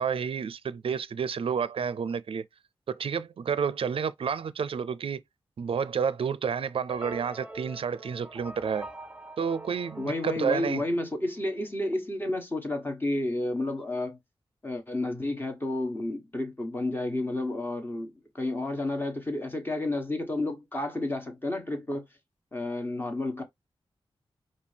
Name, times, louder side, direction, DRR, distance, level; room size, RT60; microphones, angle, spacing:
voice 1, 0.0-2.4 2.9-5.2 5.6-8.9 9.4-10.8, right 6 dB, 70° right, 0.4 m, -30 dB
sound 1, 6.9-11.2, right 2 dB, 10° right, 0.8 m, -44 dB
voice 2, 10.0-14.2 14.6-22.0 22.5-23.4, left 2 dB, 20° left, 1.4 m, -31 dB
5.1 x 2.7 x 3.3 m
wide cardioid pair, 100°, 10 cm